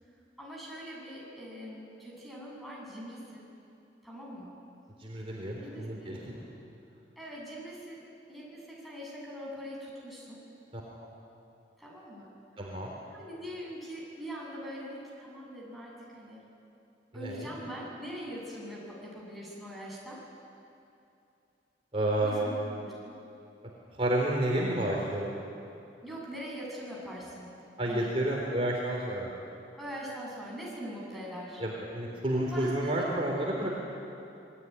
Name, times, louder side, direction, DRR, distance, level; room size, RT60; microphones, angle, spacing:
voice 1, 0.4-3.5 4.0-4.6 5.6-6.3 7.2-8.0 8.3-10.5 11.8-12.8 13.1-16.4 17.1-20.2 22.2-23.2 26.0-27.5 27.8-28.1 29.8-31.6 32.4-33.7, equal, ahead, -4 dB, 8.0 m, -42 dB
voice 2, 5.0-6.4 10.7-10.8 12.6-12.9 17.2-17.4 21.9-22.5 24.0-25.4 27.8-29.3 31.6-33.7, right 1 dB, 35° right, -2 dB, 3.7 m, -30 dB
27.0 x 21.5 x 9.8 m, 2.7 s
head